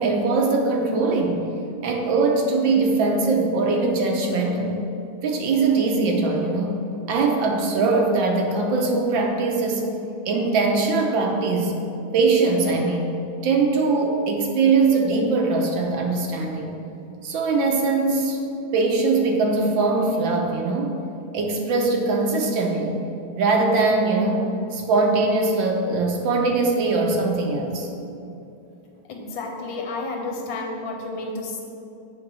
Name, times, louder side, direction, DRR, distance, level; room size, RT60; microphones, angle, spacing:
voice 1, 0.0-1.4 1.8-4.8 5.2-6.8 7.1-9.8 10.3-11.7 12.1-13.1 13.4-16.8 17.2-18.4 18.7-21.0 21.3-23.0 23.4-27.9, right 3 dB, 70° right, 1 dB, 1.4 m, -21 dB
voice 2, 29.1-31.6, left 3 dB, 70° left, 1 dB, 1.4 m, -31 dB
7.8 x 3.6 x 6.0 m, 2.7 s
omnidirectional pair, 2.3 m